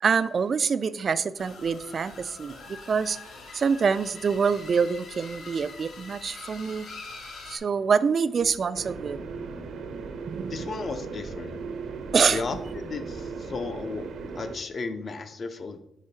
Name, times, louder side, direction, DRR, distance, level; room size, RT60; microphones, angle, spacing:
voice 1, 0.0-3.2 3.5-6.9 7.5-9.2 10.3-10.5 12.1-12.4, right 6 dB, 45° right, 15 dB, 0.3 m, -25 dB
sound 1, 1.4-7.6, left 3 dB, 70° left, 1.3 m, -44 dB
sound 2, 8.7-14.6, right 4 dB, 80° right, 0.8 m, -37 dB
voice 2, 10.5-11.6 12.3-14.1 14.4-15.8, left 4 dB, 45° left, 8 dB, 0.6 m, -34 dB
5.0 x 4.9 x 4.0 m, 0.83 s
cardioid pair, 110°, 0 cm